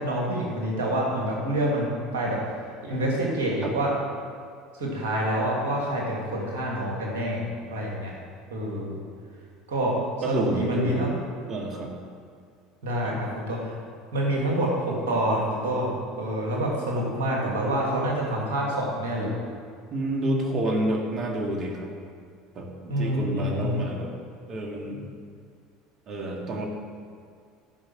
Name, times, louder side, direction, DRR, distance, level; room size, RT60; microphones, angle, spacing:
voice 1, 0.0-2.4 2.8-3.9 4.7-8.1 8.5-9.0 9.7-9.9 10.3-11.1 12.8-13.8 14.1-19.3 22.9-23.9, right 1 dB, 80° right, -3 dB, 2.6 m, -27 dB
voice 2, 10.2-11.2 11.5-11.9 13.0-13.2 19.9-21.9 22.6-24.1 24.5-25.1 26.1-26.7, right 1 dB, 45° right, 1 dB, 2.0 m, -29 dB
12.0 x 5.3 x 6.4 m, 2.2 s
hypercardioid pair, 75°, 0 cm